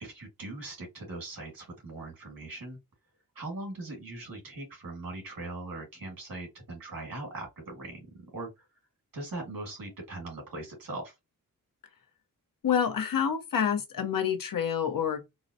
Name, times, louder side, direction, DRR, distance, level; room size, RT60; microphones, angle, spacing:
voice 1, 0.0-2.8 3.4-8.7 9.1-11.1, right 2 dB, 75° right, 2.1 m, -40 dB
voice 2, 12.6-15.3, left 8 dB, 65° left, 0.8 m, -28 dB
3.9 x 2.1 x 2.6 m
wide cardioid pair, 150°, 35 cm